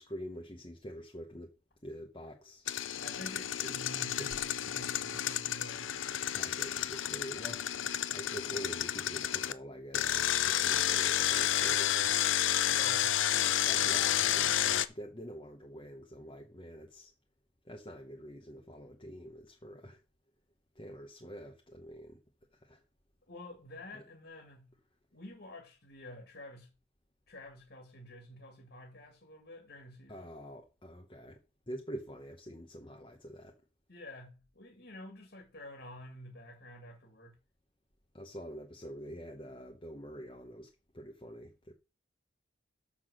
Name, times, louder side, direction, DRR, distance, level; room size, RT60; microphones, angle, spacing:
voice 1, 0.0-1.5 1.8-2.7 3.6-3.8 4.2-4.4 6.4-7.7 8.1-12.1 13.4-17.1 17.6-20.0 20.7-22.2 22.5-22.8 23.9-24.0 30.1-31.4 31.7-33.6 38.1-41.7, equal, 25° left, 1.1 m, -46 dB
Engine, 2.7-9.5 9.9-14.9, left 11 dB, 85° left, 0.6 m, -31 dB
voice 2, 3.0-5.9 12.6-13.2 23.3-24.7 25.1-26.7 27.3-30.3 33.9-37.4, left 1 dB, 60° left, 2.4 m, -49 dB
7.0 x 5.9 x 6.5 m
head